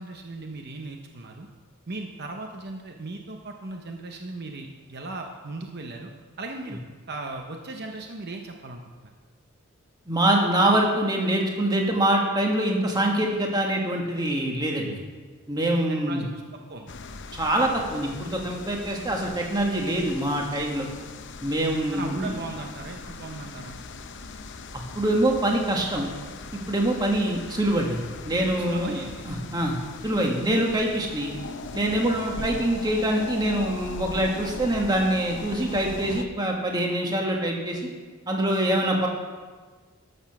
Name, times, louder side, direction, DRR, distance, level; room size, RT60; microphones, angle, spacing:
voice 1, 0.0-1.5 1.9-6.1 6.4-6.8 7.1-9.1 15.9-16.9 21.9-23.8 28.6-29.2 32.4-32.6, right 2 dB, 50° right, 3 dB, 0.8 m, -37 dB
voice 2, 10.1-15.0 15.5-16.2 17.3-20.9 21.4-22.4 24.9-26.1 26.5-29.0 29.3-29.8 30.0-31.3 31.7-37.8 38.3-39.1, right 1 dB, 20° right, 0 dB, 1.6 m, -24 dB
sound 1, 16.9-36.3, left 3 dB, 55° left, 0.6 m, -39 dB
13.0 x 6.8 x 5.9 m, 1.4 s
head